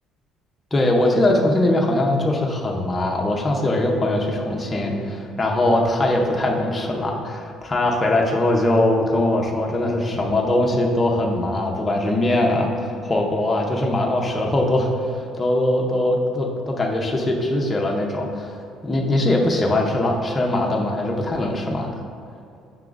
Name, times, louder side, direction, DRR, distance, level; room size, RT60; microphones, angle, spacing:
voice 1, 0.7-18.6 18.8-21.9, left 1 dB, 15° left, 0 dB, 0.7 m, -21 dB
7.2 x 6.0 x 2.5 m, 2.5 s
cardioid pair, 165°, 0 cm